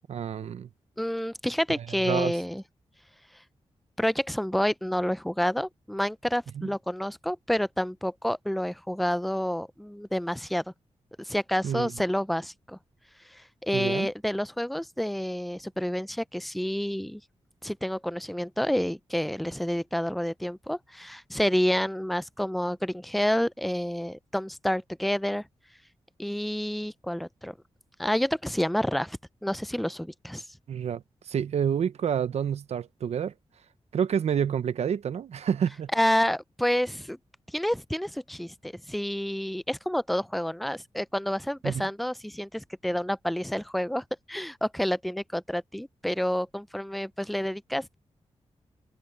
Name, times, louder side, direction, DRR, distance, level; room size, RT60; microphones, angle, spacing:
voice 1, 0.1-0.7 2.1-2.3 6.6-6.7 11.6-11.9 13.7-14.1 30.7-33.3 33.9-35.9 41.6-41.9, right 8 dB, 80° right, 0.7 m, -28 dB
voice 2, 1.0-2.6 4.0-10.6 11.2-12.8 13.3-17.2 17.6-25.5 26.2-27.5 28.0-30.4 35.9-37.2 37.5-47.9, equal, ahead, 0.4 m, -29 dB
wide cardioid pair, 120°, 11 cm